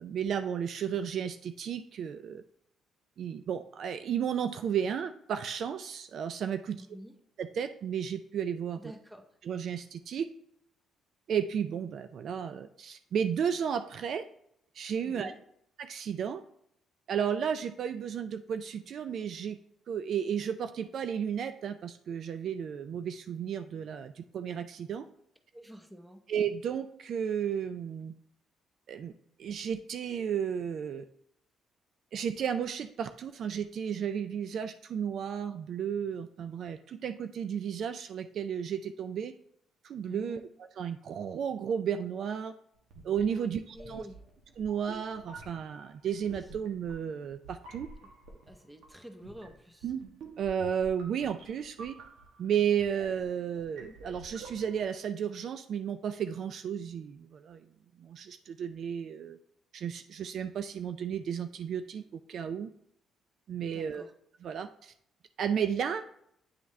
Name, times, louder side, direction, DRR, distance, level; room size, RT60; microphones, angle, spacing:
voice 1, 0.0-2.4 3.2-6.9 7.4-8.8 9.4-10.3 11.3-14.2 14.7-15.3 15.8-16.4 17.1-19.6 19.9-25.1 26.3-28.1 28.9-29.1 29.4-31.0 32.1-39.3 39.8-40.4 40.8-42.5 43.0-43.6 43.9-44.0 44.6-47.9 49.8-50.0 50.4-51.9 52.4-57.7 58.0-59.4 59.7-62.7 63.5-64.1 64.4-64.9 65.4-66.0, right 8 dB, 60° right, 9 dB, 0.3 m, -33 dB
voice 2, 6.7-7.1 8.8-9.2 15.0-15.4 25.5-26.2 40.1-40.4 43.3-44.2 48.0-48.1 48.5-49.9 63.6-64.1, equal, 10° right, 5 dB, 0.9 m, -48 dB
sound 1, 42.8-55.0, right 3 dB, 80° right, 1.2 m, -50 dB
9.3 x 3.5 x 3.2 m, 0.72 s
cardioid pair, 100°, 0 cm